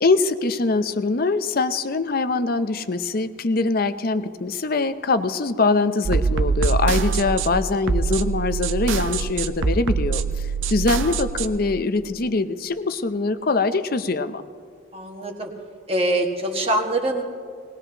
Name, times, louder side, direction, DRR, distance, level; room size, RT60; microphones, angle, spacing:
voice 1, 0.0-14.4, left 3 dB, 45° left, 11 dB, 0.6 m, -23 dB
sound 1, 6.0-11.5, right 5 dB, 65° right, 0.6 m, -24 dB
voice 2, 14.9-15.5 15.9-17.2, right 1 dB, 30° right, 1 dB, 1.6 m, -24 dB
20.0 x 19.5 x 2.9 m, 2.1 s
head